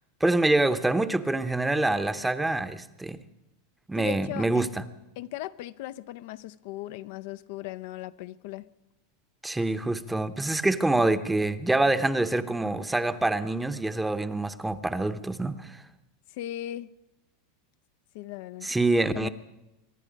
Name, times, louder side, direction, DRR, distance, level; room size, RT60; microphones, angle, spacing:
voice 1, 0.2-3.2 3.9-4.7 9.4-15.8 18.6-19.3, right 2 dB, 5° right, 0.8 m, -26 dB
voice 2, 4.0-4.7 5.2-8.7 16.3-16.9 18.1-19.3, left 14 dB, 65° left, 0.4 m, -38 dB
24.0 x 10.5 x 5.1 m
hypercardioid pair, 115°, 0 cm